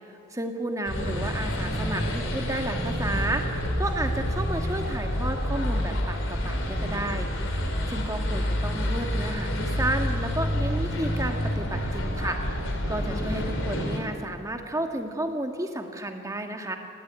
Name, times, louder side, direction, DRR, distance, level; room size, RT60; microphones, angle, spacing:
voice 1, 0.3-7.3 7.9-12.4 12.9-16.8, right 1 dB, 15° right, 4 dB, 1.6 m, -32 dB
sound 1, 0.8-14.0, equal, 65° left, 3.6 m, -28 dB
19.5 x 17.0 x 9.3 m, 2.4 s
head